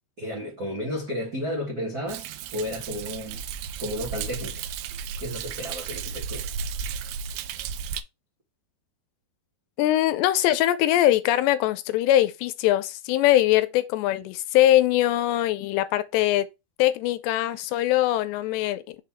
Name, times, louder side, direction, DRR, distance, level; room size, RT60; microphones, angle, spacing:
voice 1, 0.2-3.5 3.8-4.7 5.2-6.5, equal, 65° right, 0.9 m, -33 dB
Thunder, 2.1-8.0, right 6 dB, 85° right, 2.3 m, -34 dB
voice 2, 9.8-16.5 16.8-19.0, left 14 dB, 80° left, 2.7 m, -22 dB
6.6 x 3.9 x 4.5 m
omnidirectional pair, 5.1 m